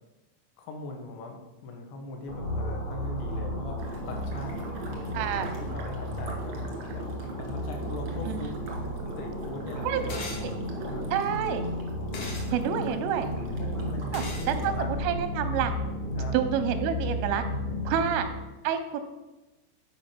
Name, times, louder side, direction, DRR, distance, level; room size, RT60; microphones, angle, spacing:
voice 1, 0.6-4.6 5.1-7.1 7.4-8.6 9.2-10.2 10.9-11.1 13.6-14.9 16.2-16.4 18.0-18.2, left 3 dB, 75° left, 2 dB, 3.1 m, -41 dB
sound 1, 2.3-18.5, equal, 50° left, 1.7 m, -33 dB
sound 2, 3.8-14.7, right 3 dB, 70° right, 1.6 m, -41 dB
voice 2, 5.1-5.5 8.3-8.5 9.8-10.0 10.4-10.5 11.1-11.6 12.5-13.3 14.1-15.7 16.3-17.4 17.9-18.3 18.6-19.0, right 9 dB, 90° right, 8 dB, 3.2 m, -28 dB
sound 3, 10.1-10.5 12.1-12.5 14.1-14.5, left 3 dB, 90° left, 1.6 m, -36 dB
9.4 x 5.0 x 5.7 m, 1.1 s
omnidirectional pair, 5.6 m